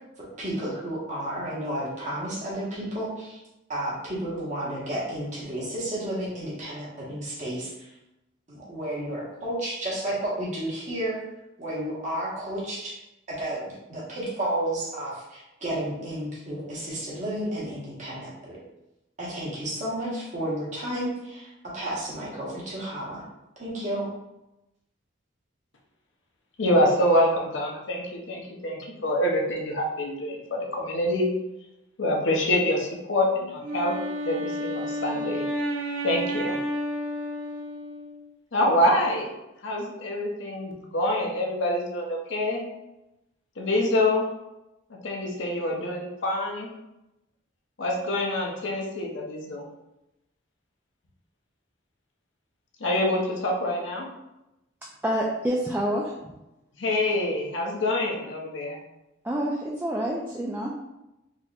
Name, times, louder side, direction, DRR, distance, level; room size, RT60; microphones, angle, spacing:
voice 1, 0.2-3.4 3.7-7.9 8.5-11.2 11.6-12.9 13.3-13.6 13.9-18.6 19.2-23.2 23.6-24.1, right 1 dB, 40° right, -6 dB, 1.2 m, -32 dB
voice 2, 26.6-31.3 32.0-34.0 34.2-35.4 36.0-36.6 38.5-39.3 39.6-42.6 43.6-44.3 44.9-46.7 47.8-49.7 52.8-54.1 56.8-58.8, left 1 dB, 70° left, -1 dB, 0.7 m, -26 dB
Wind instrument woodwind instrument, 33.6-38.3, equal, 85° right, 0.5 m, -31 dB
voice 3, 55.0-56.3 59.2-60.7, equal, 10° right, -3 dB, 0.3 m, -27 dB
4.1 x 2.9 x 2.4 m, 0.93 s
head